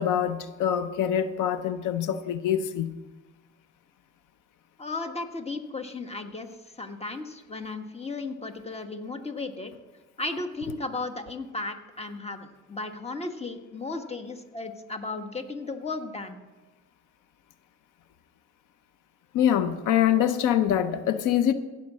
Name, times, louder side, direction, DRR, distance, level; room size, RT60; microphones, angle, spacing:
voice 1, 0.0-2.9 19.3-21.5, left 10 dB, 90° left, 11 dB, 0.8 m, -24 dB
voice 2, 4.8-6.5 6.8-9.7 10.2-16.4, left 3 dB, 20° left, 7 dB, 1.4 m, -35 dB
16.0 x 6.0 x 7.4 m, 1.2 s
cardioid pair, 90°, 30 cm